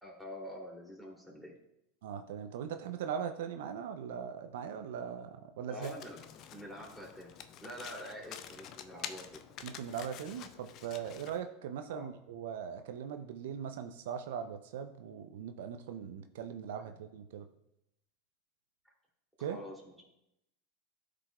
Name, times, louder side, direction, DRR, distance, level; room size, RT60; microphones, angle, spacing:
voice 1, 0.0-1.6 5.7-6.2 6.5-7.3 7.6-9.4 11.9-12.1 16.8-16.9 19.4-20.0, equal, 5° left, -2 dB, 2.6 m, -46 dB
voice 2, 2.0-5.9 9.6-17.5 19.4-19.6, right 8 dB, 75° right, 8 dB, 0.5 m, -40 dB
Domestic sounds home sounds, 5.8-11.4, left 9 dB, 50° left, 0.5 m, -48 dB
12.5 x 5.0 x 2.3 m, 0.82 s
hypercardioid pair, 100°, 0 cm